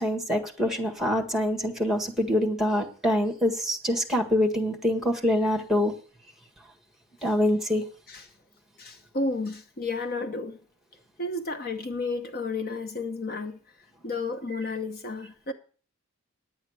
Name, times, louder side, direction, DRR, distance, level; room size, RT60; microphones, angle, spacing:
voice 1, 0.0-5.9 7.2-7.8, left 1 dB, ahead, 1.7 m, -25 dB
voice 2, 8.8-10.6 11.2-13.6 14.0-15.5, left 3 dB, 45° left, 1.0 m, -32 dB
10.0 x 9.0 x 6.5 m
head